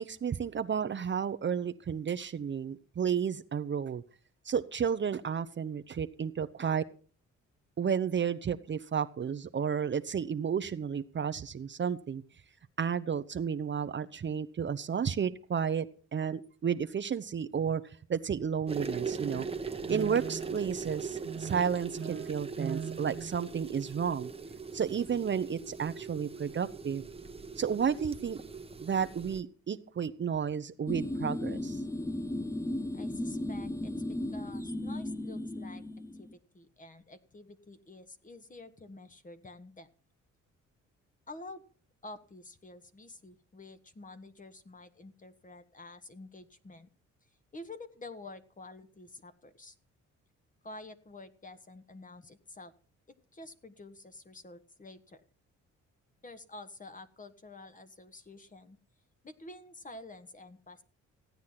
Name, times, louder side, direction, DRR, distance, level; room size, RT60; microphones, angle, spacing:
voice 1, 0.0-4.0 4.4-6.8 7.8-12.2 12.8-15.9 16.1-19.5 19.8-24.3 24.7-27.0 27.6-28.4 28.8-31.8, right 7 dB, 40° right, 10 dB, 0.9 m, -32 dB
sound 1, 18.7-29.4, right 5 dB, 20° right, 1.1 m, -40 dB
sound 2, 30.9-36.3, left 1 dB, 10° left, 0.8 m, -35 dB
voice 2, 32.9-35.8 36.1-39.9 41.3-41.6 42.0-46.9 47.5-49.7 50.6-52.7 53.1-55.2 56.2-58.8 59.2-60.8, left 2 dB, 25° left, 10 dB, 1.6 m, -49 dB
15.5 x 9.4 x 5.9 m, 0.40 s
cardioid pair, 90°, 30 cm